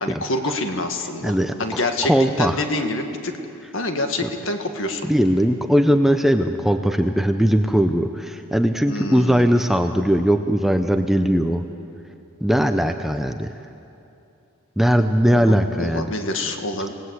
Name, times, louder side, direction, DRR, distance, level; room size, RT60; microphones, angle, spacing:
voice 1, 0.0-2.1 2.4-3.4 3.7-5.1 8.9-9.5 15.3-16.9, left 2 dB, 60° left, 5 dB, 1.9 m, -26 dB
voice 2, 1.2-2.5 5.1-11.6 12.4-13.5 14.8-16.1, equal, ahead, 7 dB, 0.6 m, -19 dB
27.5 x 18.5 x 8.2 m, 2.8 s
head